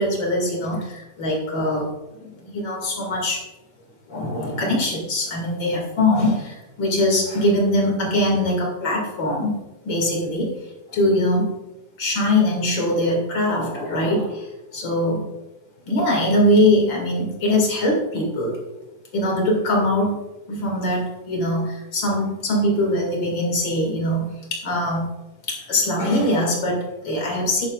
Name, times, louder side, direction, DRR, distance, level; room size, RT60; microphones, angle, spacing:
voice 1, 0.0-1.9 2.2-3.4 4.1-9.6 9.8-10.5 10.9-11.5 12.0-14.5 14.7-15.2 15.9-18.6 19.1-20.2 20.5-25.1 25.5-27.7, left 1 dB, 35° left, -1 dB, 2.2 m, -22 dB
11.5 x 9.2 x 2.4 m, 1.0 s
omnidirectional pair, 4.5 m